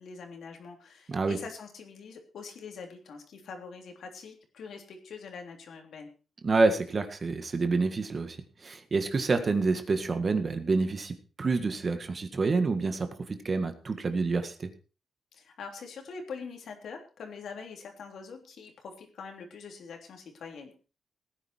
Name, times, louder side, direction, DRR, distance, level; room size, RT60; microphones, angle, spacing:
voice 1, 0.0-6.1 15.3-20.7, left 5 dB, 70° left, 3 dB, 3.4 m, -44 dB
voice 2, 1.1-1.4 6.4-8.4 8.6-14.7, right 3 dB, 35° right, 8 dB, 1.8 m, -28 dB
17.5 x 10.0 x 4.5 m, 0.35 s
cardioid pair, 130°, 0 cm